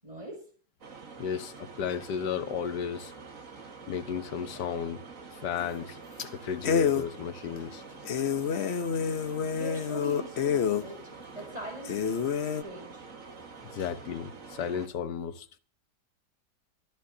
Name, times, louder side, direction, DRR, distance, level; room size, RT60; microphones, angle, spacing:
voice 1, 0.0-0.5 9.3-12.3 12.6-13.1, right 1 dB, 20° right, 6.4 m, -43 dB
sound 1, 0.8-14.9, right 4 dB, 55° right, 1.9 m, -47 dB
voice 2, 1.2-3.1 3.9-5.0 5.3-6.0 6.3-7.8 13.6-15.6, left 7 dB, 85° left, 1.6 m, -34 dB
sound 2, 5.6-5.9 6.2-6.3 6.6-7.1 7.6-7.7 8.0-10.8 11.4-11.5 11.8-12.6, left 7 dB, 50° left, 0.9 m, -28 dB
24.5 x 12.5 x 2.8 m
omnidirectional pair, 1.8 m